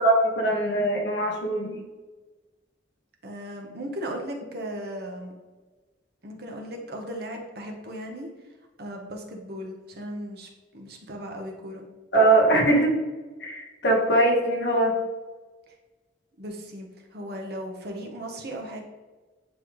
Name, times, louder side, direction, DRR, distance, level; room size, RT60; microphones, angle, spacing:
voice 1, 0.0-1.8 12.1-13.0 13.4-15.0, right 2 dB, 60° left, -1 dB, 1.5 m, -21 dB
voice 2, 3.2-5.3 6.2-8.3 8.8-11.9 16.4-18.8, equal, 55° right, 2 dB, 1.1 m, -37 dB
9.2 x 3.3 x 3.1 m, 1.3 s
head